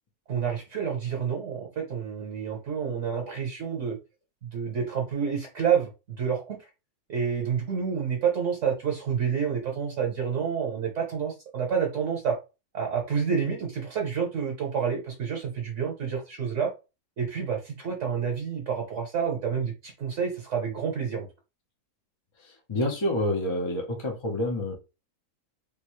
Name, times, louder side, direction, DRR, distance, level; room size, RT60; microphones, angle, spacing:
voice 1, 0.3-4.0 4.4-6.6 7.1-12.4 12.7-16.7 17.2-21.3, right 7 dB, 55° right, 0 dB, 1.2 m, -29 dB
voice 2, 22.4-24.7, left 1 dB, 30° left, 1 dB, 0.5 m, -28 dB
3.6 x 2.6 x 3.1 m, 0.28 s
omnidirectional pair, 1.6 m